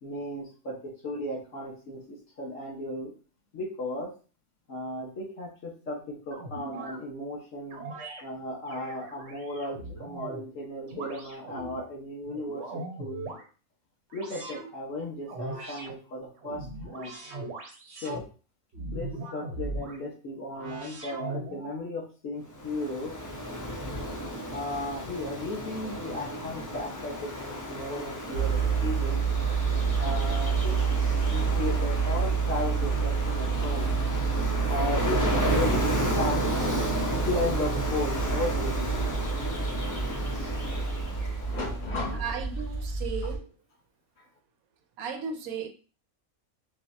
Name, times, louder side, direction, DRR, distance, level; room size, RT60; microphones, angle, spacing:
voice 1, 0.0-3.1 3.5-4.1 4.7-7.8 8.2-13.2 14.1-17.1 18.0-18.2 18.9-23.1 24.5-29.2 30.0-30.8 31.3-33.9 34.7-35.9 36.2-36.4 37.1-38.9 41.4-42.3, left 2 dB, 65° left, 1.7 m, -35 dB
sound 1, 6.3-7.0 7.7-8.2 8.7-10.5 10.9-11.8 12.3-13.4 14.1-14.7 15.3-15.9 16.4-18.2 18.7-20.0 20.5-21.8, right 2 dB, 55° right, 1.0 m, -39 dB
Ocean, 22.5-41.6, equal, 25° left, 0.4 m, -33 dB
sound 2, 28.3-43.4, right 5 dB, 45° left, 1.6 m, -28 dB
voice 2, 42.1-43.5 45.0-45.7, right 6 dB, 80° right, 1.1 m, -35 dB
5.7 x 2.5 x 2.7 m
omnidirectional pair, 1.5 m